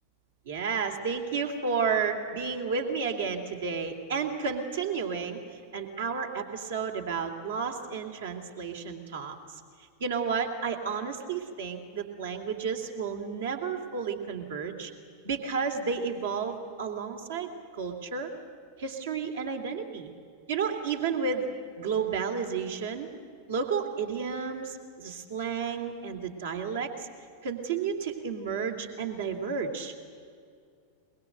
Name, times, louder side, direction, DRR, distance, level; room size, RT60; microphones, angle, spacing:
voice 1, 0.5-5.4 5.7-9.3 10.0-14.9 15.2-17.5 17.8-18.3 18.8-20.1 20.5-21.5 21.8-23.1 23.5-27.1 27.4-29.9, right 5 dB, 60° right, 4 dB, 2.6 m, -32 dB
23.0 x 22.0 x 7.8 m, 2.2 s
figure-of-eight pair, 90°, 0 cm